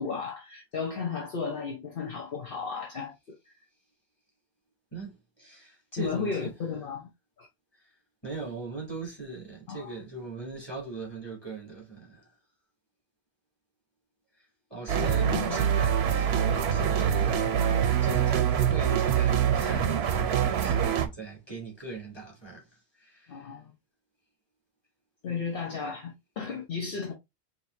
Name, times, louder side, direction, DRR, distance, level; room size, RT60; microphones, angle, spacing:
voice 1, 0.0-3.4 6.0-7.1 7.4-7.5 9.7-9.9 15.0-15.6 18.3-18.5 23.3-23.7 25.2-27.1, left 5 dB, 60° left, 1.0 m, -34 dB
voice 2, 4.9-6.5 7.7-7.9 8.2-12.4 14.3-23.6, right 3 dB, 25° left, 2.7 m, -40 dB
sound 1, 14.9-21.1, right 8 dB, 80° right, 0.9 m, -25 dB
5.2 x 2.9 x 2.6 m
omnidirectional pair, 1.1 m